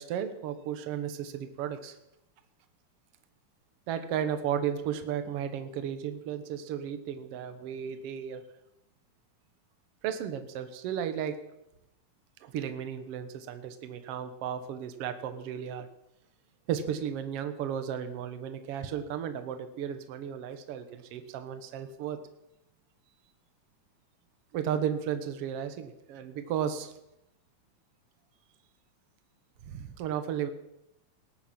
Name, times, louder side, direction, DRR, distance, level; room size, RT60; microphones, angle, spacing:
voice 1, 0.0-2.0 3.9-8.4 10.0-11.4 12.4-15.9 16.7-22.2 24.5-26.9 29.7-30.5, right 9 dB, 60° right, 9 dB, 1.9 m, -34 dB
19.0 x 8.9 x 5.9 m, 0.86 s
omnidirectional pair, 3.3 m